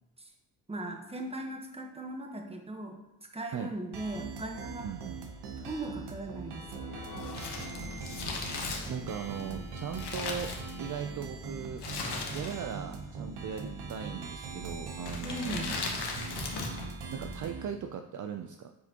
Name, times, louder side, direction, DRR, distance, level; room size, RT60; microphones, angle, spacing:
voice 1, 0.7-3.0 3.3-4.9 5.4-6.6 15.2-15.7, right 1 dB, 15° right, 3 dB, 1.1 m, -38 dB
sound 1, 3.9-17.7, right 4 dB, 75° right, 0.9 m, -41 dB
voice 2, 4.8-5.2 8.9-10.5 10.8-11.8 12.3-15.7 17.1-18.7, right 7 dB, 50° right, 6 dB, 0.5 m, -38 dB
sound 2, 6.2-13.2 13.6-13.7 14.1-14.2, left 4 dB, 50° left, 1.0 m, -51 dB
Crumpling crinkling, 7.1-11.1 11.8-12.8 13.1-13.2 14.0-14.3 15.0-16.9 17.2-17.3, left 4 dB, 75° left, 1.2 m, -37 dB
8.0 x 4.9 x 2.9 m, 0.91 s
cardioid pair, 80°, 40 cm